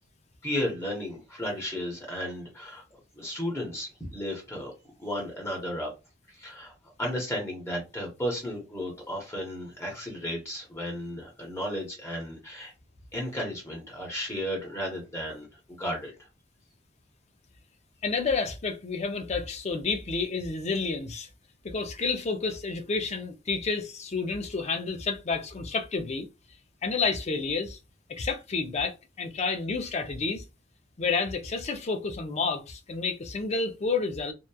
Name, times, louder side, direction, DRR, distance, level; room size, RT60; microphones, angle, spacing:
voice 1, 0.4-2.8 3.1-4.7 5.0-5.9 6.3-12.7 13.1-16.3, equal, 15° left, 0.9 m, -34 dB
voice 2, 18.0-21.3 21.6-26.3 26.8-27.8 28.1-30.4 31.0-34.3, left 4 dB, 35° left, 0.4 m, -30 dB
2.9 x 2.2 x 2.2 m
head